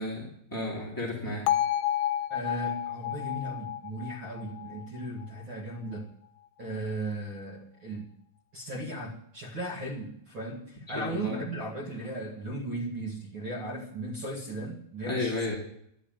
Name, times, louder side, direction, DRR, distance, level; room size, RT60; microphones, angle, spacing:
voice 1, 0.0-1.5 10.9-11.4 15.1-15.5, left 2 dB, 5° left, -4 dB, 1.5 m, -33 dB
Bell, 1.5-5.5, left 11 dB, 80° left, 2.9 m, -31 dB
voice 2, 2.3-6.1 6.6-8.1 8.5-15.5, right 1 dB, 45° right, -1 dB, 1.6 m, -36 dB
13.0 x 12.5 x 9.0 m, 0.71 s
omnidirectional pair, 5.6 m